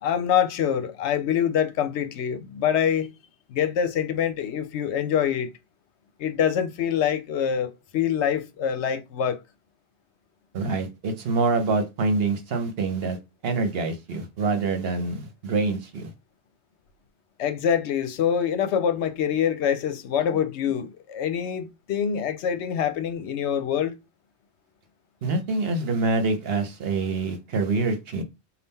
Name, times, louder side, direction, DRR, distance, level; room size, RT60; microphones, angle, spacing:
voice 1, 0.0-3.1 3.5-5.5 6.2-9.4 17.4-23.9, left 8 dB, 75° left, 0.9 m, -25 dB
voice 2, 10.5-13.2 13.4-16.1 25.2-28.2, right 3 dB, 60° right, 1.0 m, -26 dB
4.0 x 2.3 x 3.6 m
omnidirectional pair, 1.2 m